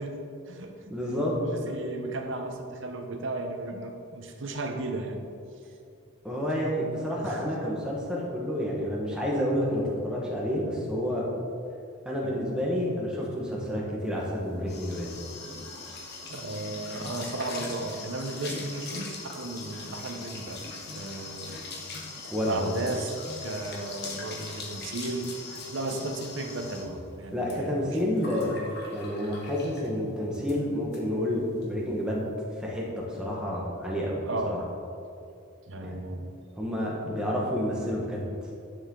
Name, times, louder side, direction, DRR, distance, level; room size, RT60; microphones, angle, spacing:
voice 1, 0.0-0.7 1.7-5.2 7.2-7.5 12.2-12.3 16.3-20.6 20.9-21.6 22.4-27.8 30.0-30.1 34.3-34.6 35.7-36.3 37.2-37.3, right 2 dB, 60° right, 4 dB, 0.9 m, -35 dB
voice 2, 0.9-1.8 6.2-11.2 12.0-15.1 22.3-22.7 27.3-28.6 28.9-32.3 32.6-34.2 34.4-34.6 35.8-36.0 36.5-38.3, equal, 5° right, -4 dB, 1.5 m, -29 dB
sound 1, 14.2-30.0 30.3-30.6 30.9-31.0 31.3-31.7, left 3 dB, 50° left, 1.4 m, -41 dB
10.5 x 6.6 x 3.9 m, 2.4 s
head